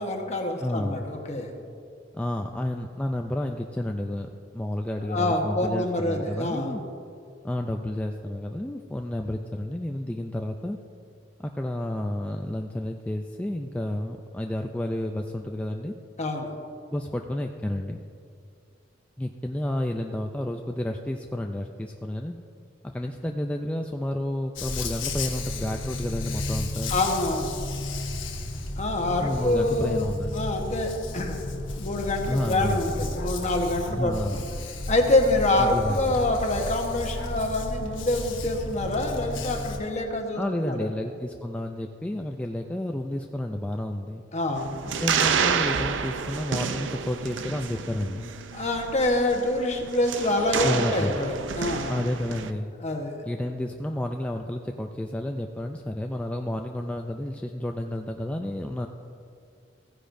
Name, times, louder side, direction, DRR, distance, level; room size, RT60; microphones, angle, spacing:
voice 1, 0.0-1.5 5.1-6.8 16.2-16.6 26.9-27.6 28.8-31.4 31.8-34.4 34.9-40.9 44.3-44.7 48.5-51.9 52.8-53.2, left 2 dB, 35° left, 2 dB, 1.1 m, -26 dB
voice 2, 0.6-1.1 2.1-4.3 4.5-6.8 7.4-10.8 11.4-15.9 16.9-18.0 19.2-22.4 22.8-27.0 29.2-30.4 32.3-33.1 33.9-34.5 35.6-36.2 40.4-44.2 45.0-48.3 50.6-51.2 51.9-52.7 53.2-58.9, left 1 dB, 5° left, 3 dB, 0.3 m, -31 dB
Dog, 24.6-39.8, left 2 dB, 85° left, 1.1 m, -33 dB
sound 1, 44.5-52.5, right 6 dB, 75° right, 0.5 m, -29 dB
15.5 x 9.9 x 2.6 m, 2.4 s
head